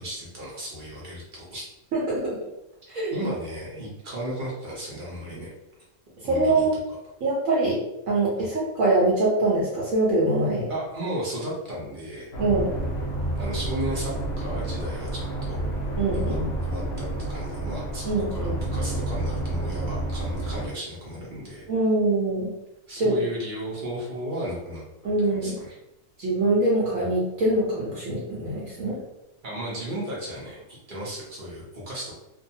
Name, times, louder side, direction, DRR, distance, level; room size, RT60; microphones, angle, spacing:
voice 1, 0.0-1.6 3.1-5.5 6.2-6.7 8.4-8.5 10.7-12.3 13.3-15.6 16.1-16.4 16.6-21.7 22.9-24.8 25.2-25.7 29.4-32.2, right 1 dB, 45° right, -5 dB, 0.7 m, -34 dB
voice 2, 1.9-2.4 2.9-3.3 6.3-6.7 7.2-10.7 12.4-12.7 16.0-16.5 18.0-18.6 21.7-22.5 23.0-23.2 25.0-25.6 26.2-29.0, right 2 dB, 65° right, -6 dB, 1.0 m, -24 dB
sound 1, 12.3-20.7, right 1 dB, 55° left, 0.8 m, -29 dB
2.6 x 2.3 x 2.7 m, 0.89 s
omnidirectional pair, 1.6 m